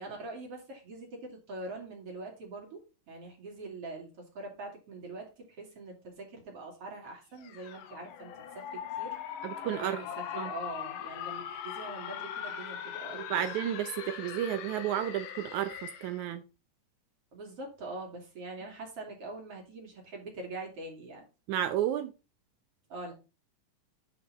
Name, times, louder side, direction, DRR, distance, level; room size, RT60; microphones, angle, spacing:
voice 1, 0.0-2.8 3.1-9.2 9.8-13.5 17.3-21.3 22.9-23.1, right 2 dB, 45° right, 3.3 m, -43 dB
sound 1, 7.4-16.2, left 10 dB, 80° left, 2.5 m, -40 dB
voice 2, 9.4-10.0 10.4-10.5 13.1-16.4 21.5-22.1, right 11 dB, 75° right, 1.8 m, -32 dB
9.4 x 5.7 x 4.0 m
omnidirectional pair, 3.8 m